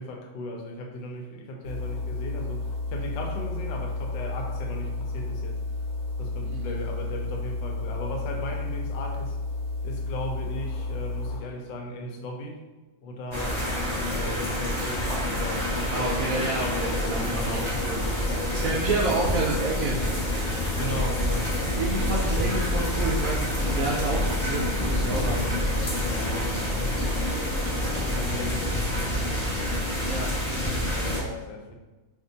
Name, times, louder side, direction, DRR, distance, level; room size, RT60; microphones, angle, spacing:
voice 1, 0.0-5.6 6.2-9.4 9.8-12.6 13.0-13.6 14.1-15.1 15.4-16.6 18.3-19.1 20.5-21.8 26.1-27.5 28.1-29.3 30.9-31.8, left 1 dB, 90° left, 2 dB, 1.3 m, -37 dB
sound 1, 1.6-11.4, left 3 dB, 65° left, 1.1 m, -32 dB
sound 2, 13.3-31.2, left 1 dB, 30° left, 0.5 m, -27 dB
voice 2, 15.9-18.0 18.6-20.1 21.8-25.7 30.0-30.3, right 2 dB, 75° right, -4 dB, 0.8 m, -29 dB
2.8 x 2.6 x 3.8 m, 1.2 s
omnidirectional pair, 1.9 m